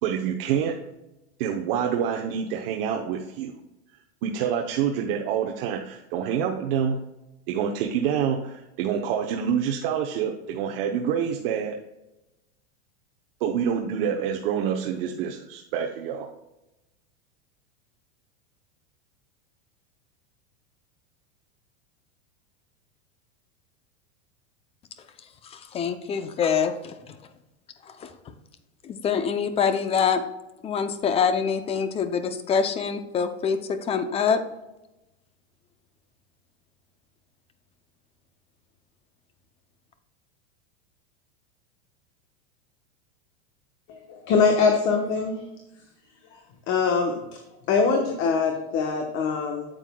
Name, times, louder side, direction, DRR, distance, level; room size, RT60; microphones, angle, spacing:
voice 1, 0.0-0.8 1.4-3.5 4.2-7.0 7.5-11.8 13.4-16.3, right 8 dB, 55° right, 1 dB, 0.9 m, -27 dB
voice 2, 25.4-27.2 27.8-28.1 28.8-30.2 30.6-34.4, left 6 dB, 20° left, 10 dB, 0.5 m, -25 dB
voice 3, 43.9-45.4 46.7-47.1 47.7-49.7, left 5 dB, 35° left, 3 dB, 1.0 m, -23 dB
8.9 x 7.6 x 2.3 m, 0.95 s
supercardioid pair, 145°, 33 cm